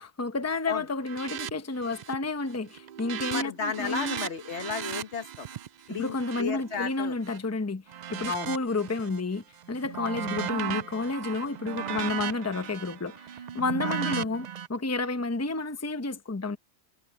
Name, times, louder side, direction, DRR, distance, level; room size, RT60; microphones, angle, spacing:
voice 1, 0.0-4.2 5.9-7.8 8.1-16.6, left 3 dB, 15° left, 0.8 m, -31 dB
sound 1, 1.0-1.5 1.8-2.2 2.6-7.4 7.9-9.2 9.6-14.7, right 9 dB, 55° right, 0.5 m, -36 dB
voice 2, 3.3-5.5 5.9-7.1 8.3-8.5 13.8-14.2, left 6 dB, 80° left, 1.6 m, -33 dB
omnidirectional pair, 1.1 m